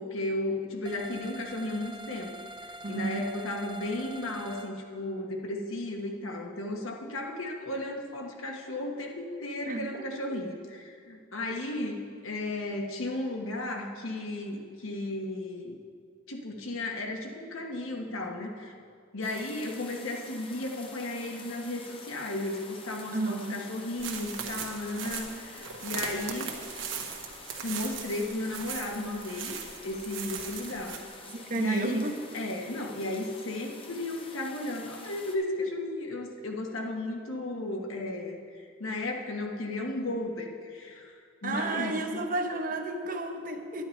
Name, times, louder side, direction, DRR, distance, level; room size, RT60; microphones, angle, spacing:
voice 1, 0.0-2.4 2.6-15.8 16.3-18.7 19.1-26.5 27.6-31.0 31.5-32.0 32.3-42.2, left 2 dB, 90° left, 1 dB, 1.3 m, -34 dB
sound 1, 0.8-4.7, right 1 dB, 20° right, 0.5 m, -45 dB
voice 2, 2.8-3.3 9.7-10.4 23.1-23.5 31.3-32.2 41.4-43.8, right 2 dB, 40° right, 5 dB, 0.8 m, -32 dB
sound 2, 19.2-35.4, left 3 dB, 25° left, 0.8 m, -48 dB
sound 3, 24.0-31.0, right 6 dB, 65° right, 1.1 m, -39 dB
10.0 x 9.6 x 4.5 m, 2.2 s
head